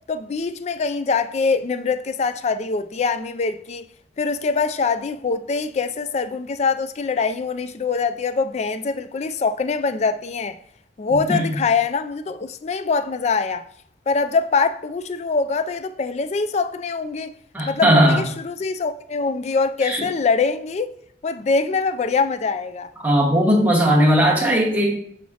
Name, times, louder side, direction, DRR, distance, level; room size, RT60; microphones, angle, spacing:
voice 1, 0.1-3.9 4.2-10.6 11.0-13.6 14.1-17.3 17.7-20.9 21.2-22.9, left 4 dB, 40° left, 0.3 m, -23 dB
voice 2, 11.1-11.6 17.5-18.2 19.8-20.0 23.0-25.0, equal, 10° right, 1.5 m, -18 dB
7.3 x 5.8 x 2.8 m
head